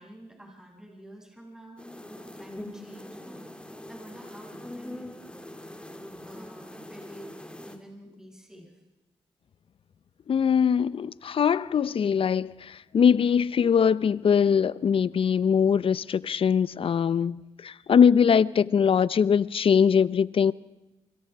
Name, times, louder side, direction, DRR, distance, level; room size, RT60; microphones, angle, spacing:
voice 1, 0.0-1.8 2.1-5.4 6.2-7.4 7.6-8.7, right 1 dB, 5° right, 7.5 m, -48 dB
sound 1, 1.8-7.8, left 1 dB, 10° left, 3.5 m, -43 dB
voice 2, 10.3-20.5, left 7 dB, 60° left, 0.8 m, -22 dB
26.5 x 25.5 x 4.8 m
cardioid pair, 55°, 10 cm